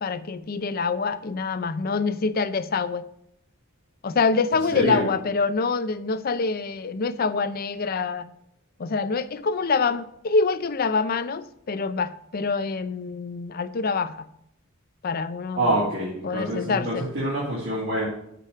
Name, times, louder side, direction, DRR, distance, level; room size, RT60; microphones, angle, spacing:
voice 1, 0.0-3.0 4.0-8.3 8.8-14.2 15.0-15.9 16.2-17.1, left 4 dB, 45° left, 13 dB, 0.5 m, -26 dB
voice 2, 4.7-5.1 15.6-18.1, right 1 dB, 75° right, -8 dB, 3.0 m, -26 dB
7.5 x 4.8 x 6.5 m, 0.76 s
head